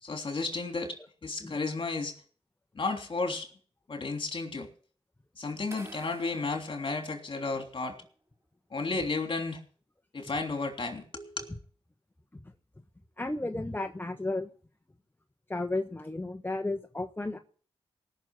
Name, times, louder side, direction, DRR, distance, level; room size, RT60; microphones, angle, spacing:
voice 1, 0.0-2.1 2.7-3.5 3.9-4.7 5.3-8.0 8.7-9.6 10.1-11.5, left 3 dB, 55° left, 4 dB, 3.2 m, -33 dB
sound 1, 5.7-7.8, right 2 dB, 25° right, 2.8 m, -51 dB
voice 2, 13.2-14.5 15.5-17.4, left 2 dB, 20° left, 6 dB, 1.2 m, -33 dB
19.0 x 6.5 x 7.7 m, 0.43 s
cardioid pair, 60°, 11 cm